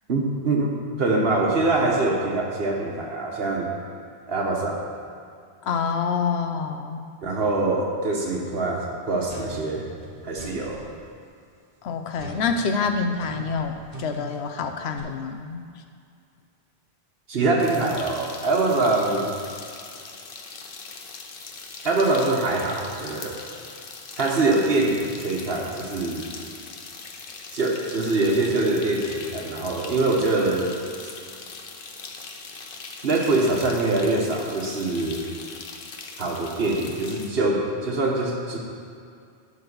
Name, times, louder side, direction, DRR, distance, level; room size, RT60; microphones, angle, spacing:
voice 1, 0.1-0.7 1.0-3.7 4.3-4.9 7.2-9.8 10.2-10.8 17.3-19.3 21.8-23.4 24.2-26.3 27.5-30.8 31.0-31.1 33.0-35.2 36.2-38.6, right 2 dB, 65° right, -1 dB, 1.4 m, -24 dB
voice 2, 5.6-7.0 11.8-15.7, left 5 dB, 85° left, 6 dB, 0.9 m, -27 dB
sound 1, 9.3-10.9 12.2-15.0, right 2 dB, 35° right, 1.4 m, -41 dB
sound 2, 17.6-37.3, left 4 dB, 60° left, 1.0 m, -41 dB
11.0 x 3.9 x 6.8 m, 2.4 s
omnidirectional pair, 1.1 m